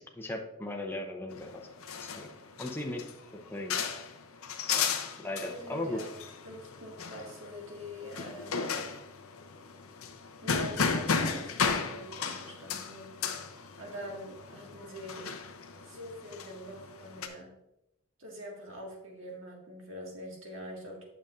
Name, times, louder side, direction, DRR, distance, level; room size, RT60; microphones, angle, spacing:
voice 1, 0.0-1.6 2.0-2.3 2.6-3.1 3.5-3.8 4.7-4.9 5.2-6.0, left 1 dB, 10° left, 2 dB, 0.7 m, -37 dB
sound 1, 1.3-17.3, left 5 dB, 85° left, 0.7 m, -35 dB
voice 2, 5.5-6.2 6.4-8.8 10.4-13.5 13.8-15.3 15.8-17.5 18.2-21.0, equal, 65° right, -1 dB, 1.8 m, -44 dB
8.8 x 6.9 x 2.5 m, 0.84 s
head